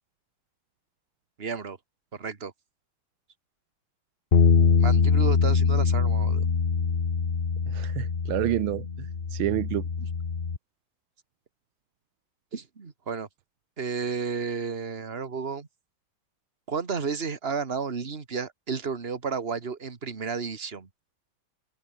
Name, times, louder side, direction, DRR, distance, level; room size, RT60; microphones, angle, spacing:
voice 1, 1.4-1.8 2.1-2.5 4.8-6.5 10.0-10.1 12.5-13.3 13.8-15.7 16.7-20.9, right 5 dB, 30° right, 2.0 m, -32 dB
sound 1, 4.3-10.6, left 5 dB, 30° left, 1.4 m, -23 dB
voice 2, 7.7-9.8, right 16 dB, 80° right, 1.4 m, -29 dB
omnidirectional pair, 2.3 m